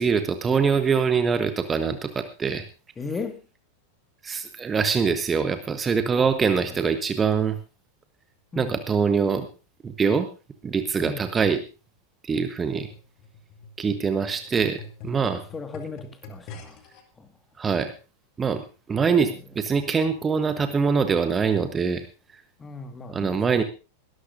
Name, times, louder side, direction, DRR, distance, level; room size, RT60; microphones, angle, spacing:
voice 1, 0.0-2.7 4.2-7.6 8.6-9.5 9.8-10.3 10.6-11.6 12.2-12.9 13.8-14.8 15.0-15.4 17.6-17.9 18.4-22.1 23.1-23.6, right 5 dB, 20° right, 1.1 m, -24 dB
voice 2, 3.0-3.4 6.1-6.9 8.5-8.8 11.0-11.3 15.5-16.8 17.2-17.3 19.1-19.4 22.6-23.4, left 4 dB, 15° left, 1.8 m, -37 dB
sound 1, 12.6-17.0 17.8-17.9, left 3 dB, 40° left, 2.1 m, -45 dB
21.5 x 13.0 x 2.6 m
figure-of-eight pair, 90°, 0 cm